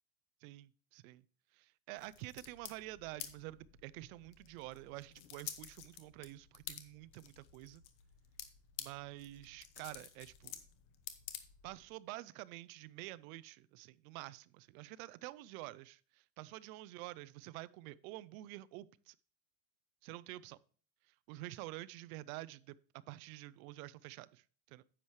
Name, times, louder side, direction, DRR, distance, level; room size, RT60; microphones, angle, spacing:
voice 1, 0.4-1.2 1.5-7.8 8.8-10.6 11.6-19.1 20.0-20.6 21.1-22.8 23.1-24.8, right 18 dB, 70° right, 0.6 m, -49 dB
sound 1, 2.0-11.9, left 11 dB, 45° left, 1.0 m, -51 dB
9.9 x 7.2 x 3.2 m
cardioid pair, 165°, 44 cm